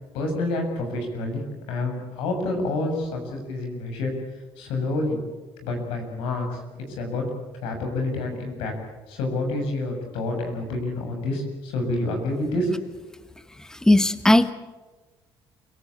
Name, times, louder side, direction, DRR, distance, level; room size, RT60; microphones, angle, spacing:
voice 1, 0.1-1.4 1.7-4.1 4.6-5.2 5.6-6.6 6.9-7.2 7.6-8.7 9.1-12.7, left 2 dB, 90° left, 4 dB, 7.2 m, -28 dB
voice 2, 13.7-14.5, left 1 dB, 5° left, 12 dB, 1.2 m, -17 dB
28.5 x 18.0 x 8.6 m, 1.2 s
cardioid pair, 90°, 9 cm